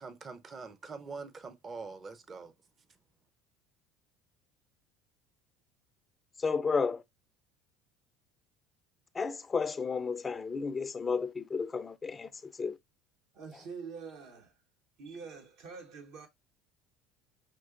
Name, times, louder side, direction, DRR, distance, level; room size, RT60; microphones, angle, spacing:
voice 1, 0.0-2.5, right 4 dB, 35° right, 0.7 m, -44 dB
voice 2, 6.4-7.0 9.1-12.8, left 5 dB, 25° left, 0.4 m, -32 dB
voice 3, 13.3-14.6 15.0-16.3, right 5 dB, 65° right, 1.2 m, -45 dB
5.2 x 3.0 x 2.4 m
hypercardioid pair, 80°, 0 cm